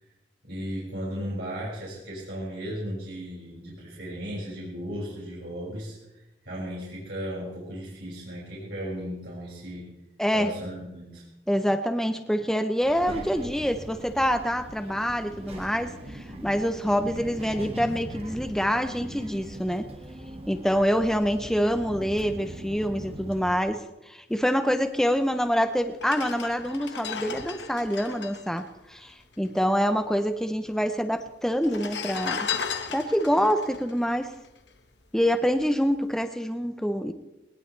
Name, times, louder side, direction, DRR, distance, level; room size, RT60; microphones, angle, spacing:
voice 1, 0.4-6.0 6.4-9.8 10.3-11.2, equal, 85° right, -7 dB, 6.2 m, -35 dB
voice 2, 10.2-10.5 11.5-19.9 20.5-32.5 32.9-34.3 35.1-37.1, equal, 5° left, 7 dB, 0.7 m, -26 dB
Child speech kid speaking, 12.8-23.6, right 1 dB, 35° right, 1.9 m, -40 dB
sound 1, 25.3-25.4 25.9-29.6 29.9-30.0 30.2-30.9 31.5-35.0 35.5-35.7, left 6 dB, 80° left, 1.4 m, -35 dB
20.5 x 20.0 x 3.3 m, 0.98 s
head